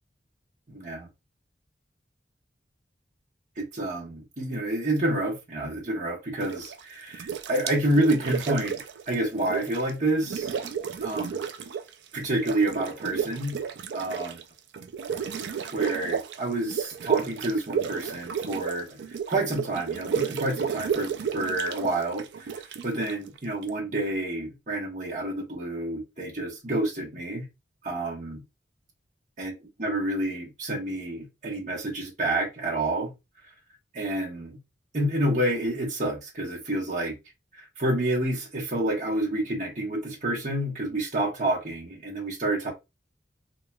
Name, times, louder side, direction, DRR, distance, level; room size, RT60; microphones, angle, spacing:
voice 1, 0.7-1.1 3.6-10.5 11.0-11.5 12.1-13.6 13.9-14.4 15.2-19.0 19.3-27.5 27.8-28.4 29.4-29.5 29.8-33.1 33.9-34.6 34.9-37.2 37.5-42.7, right 1 dB, 45° right, 1.1 m, -29 dB
sound 1, 6.4-6.8 7.1-9.9 10.2-11.9 12.2-23.7, right 7 dB, 75° right, 0.4 m, -32 dB
3.0 x 2.9 x 2.2 m
head